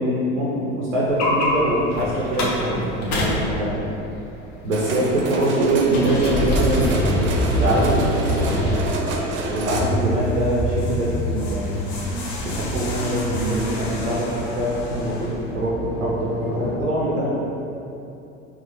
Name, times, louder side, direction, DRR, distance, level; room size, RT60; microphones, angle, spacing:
voice 1, 0.0-3.9 4.6-8.0 9.5-11.8 12.4-17.5, right 1 dB, 85° right, -5 dB, 0.6 m, -23 dB
sound 1, 1.1-16.8, equal, 55° left, 0.8 m, -26 dB
sound 2, 4.7-9.8, right 2 dB, 30° right, 0.5 m, -27 dB
3.4 x 2.7 x 3.7 m, 2.8 s
figure-of-eight pair, 65°, 38 cm